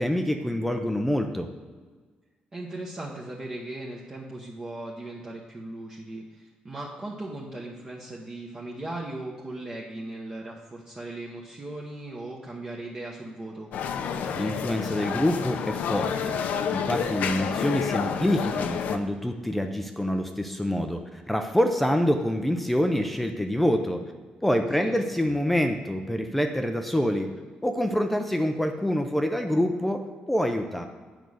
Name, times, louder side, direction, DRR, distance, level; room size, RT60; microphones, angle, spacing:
voice 1, 0.0-1.5 14.3-16.4 16.7-24.0 24.4-27.3 27.6-30.9, equal, 5° left, 5 dB, 0.5 m, -26 dB
voice 2, 2.5-13.7 24.8-24.9, right 2 dB, 20° right, -3 dB, 0.9 m, -38 dB
sound 1, 13.7-19.0, left 7 dB, 75° left, 0.6 m, -29 dB
9.1 x 5.3 x 6.2 m, 1.5 s
cardioid pair, 170°, 3 cm